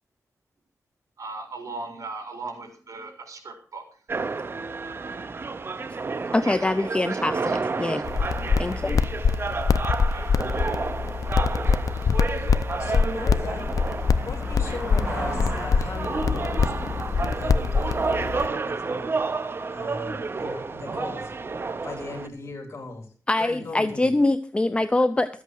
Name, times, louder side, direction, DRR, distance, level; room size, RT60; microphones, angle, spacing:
voice 1, 1.2-3.8 4.8-5.3 6.3-7.6 7.9-8.8 10.1-10.3 11.4-11.7, right 3 dB, 65° right, 3 dB, 4.3 m, -40 dB
sound 1, 4.1-22.3, right 4 dB, 40° right, 0.7 m, -31 dB
voice 2, 6.3-8.0 8.6-9.0 23.3-25.4, left 2 dB, 15° left, 11 dB, 0.6 m, -24 dB
sound 2, 8.0-18.5, left 5 dB, 70° left, 0.6 m, -24 dB
sound 3, 12.5-18.6, right 1 dB, 15° right, 4.4 m, -39 dB
voice 3, 12.8-13.7 14.2-19.1 19.7-21.3 21.8-23.1 23.4-24.1, left 3 dB, 50° left, 2 dB, 3.5 m, -38 dB
13.5 x 8.4 x 6.3 m, 0.42 s
wide cardioid pair, 135°, 6 cm